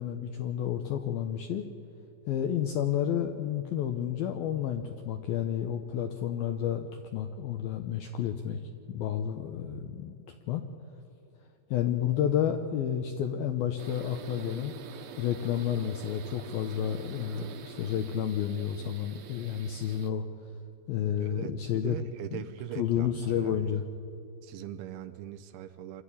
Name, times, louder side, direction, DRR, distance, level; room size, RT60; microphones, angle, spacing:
voice 1, 0.0-1.7 2.3-8.6 8.9-10.2 10.5-10.6 11.7-14.7 15.2-20.2 20.9-22.0 22.3-22.4 22.8-23.8, left 9 dB, 85° left, 5 dB, 2.1 m, -30 dB
sound 1, 13.8-20.1, right 7 dB, 65° right, 2.3 m, -46 dB
voice 2, 21.2-23.8 24.4-26.0, right 11 dB, 85° right, 6 dB, 3.1 m, -41 dB
25.0 x 13.5 x 10.0 m, 2.9 s
omnidirectional pair, 5.4 m